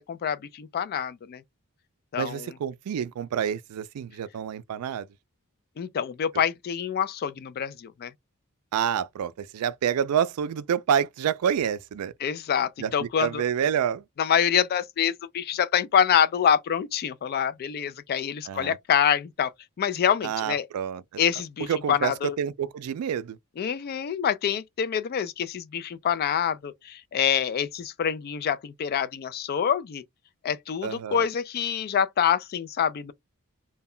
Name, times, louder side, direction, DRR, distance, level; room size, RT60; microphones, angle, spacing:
voice 1, 0.0-1.4 2.1-2.4 5.8-8.1 12.2-13.4 14.2-19.5 19.8-20.7 21.2-22.4 23.6-30.0 30.4-33.1, left 8 dB, 45° left, 0.3 m, -26 dB
voice 2, 2.2-5.1 8.7-12.1 12.8-14.0 18.5-18.8 20.2-21.0 21.7-23.4 30.8-31.3, right 8 dB, 85° right, 0.3 m, -28 dB
2.2 x 2.1 x 3.6 m
head